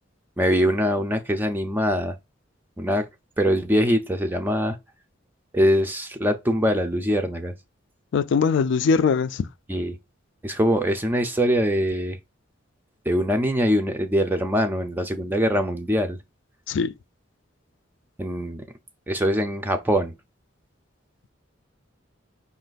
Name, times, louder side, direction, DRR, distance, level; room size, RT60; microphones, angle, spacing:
voice 1, 0.4-2.2 2.8-3.1 3.4-4.8 5.5-7.5 9.7-10.0 10.4-12.2 13.1-16.2 18.2-18.7 19.1-20.1, equal, 10° right, 0.4 m, -23 dB
voice 2, 8.1-9.4 16.7-16.9, left 5 dB, 65° left, 0.3 m, -21 dB
5.3 x 2.4 x 3.9 m
head